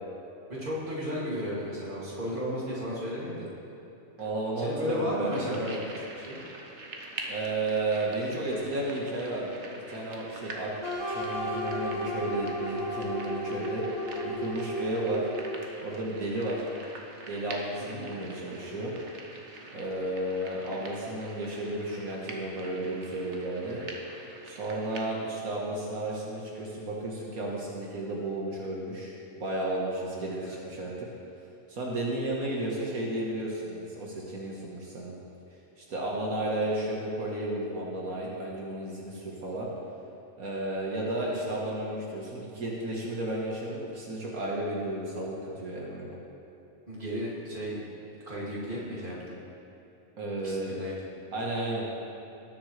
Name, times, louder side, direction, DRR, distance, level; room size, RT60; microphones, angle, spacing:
voice 1, 0.5-3.5 4.6-5.8 6.2-6.4 8.4-8.6 17.8-18.0 30.3-30.6 41.3-41.5 46.9-47.8 48.3-49.4 50.4-51.1, equal, 35° right, -7 dB, 2.7 m, -34 dB
voice 2, 4.2-5.7 7.3-9.6 9.9-10.7 11.1-13.8 14.2-15.3 15.8-16.7 17.3-18.9 19.7-23.8 24.5-31.1 31.7-35.1 35.8-39.7 40.4-46.2 50.2-50.8 51.3-51.9, right 1 dB, 80° right, -3 dB, 1.9 m, -33 dB
sound 1, 5.3-25.1, right 2 dB, 55° right, 1.4 m, -45 dB
sound 2, 10.8-15.8, equal, 20° left, 2.4 m, -33 dB
19.5 x 8.0 x 3.3 m, 3.0 s
omnidirectional pair, 1.5 m